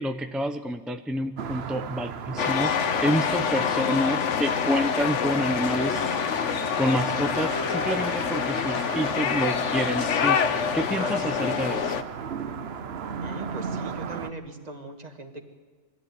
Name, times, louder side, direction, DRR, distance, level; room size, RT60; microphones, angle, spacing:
voice 1, 0.0-6.5 6.8-11.9, equal, ahead, 7 dB, 0.5 m, -28 dB
sound 1, 1.4-14.3, right 7 dB, 60° right, 1.0 m, -37 dB
sound 2, 2.4-12.0, left 7 dB, 75° left, 1.2 m, -26 dB
voice 2, 3.5-4.1 11.0-11.9 13.2-15.4, right 2 dB, 35° right, 4 dB, 2.0 m, -39 dB
22.5 x 14.5 x 9.5 m, 1.5 s
omnidirectional pair, 1.3 m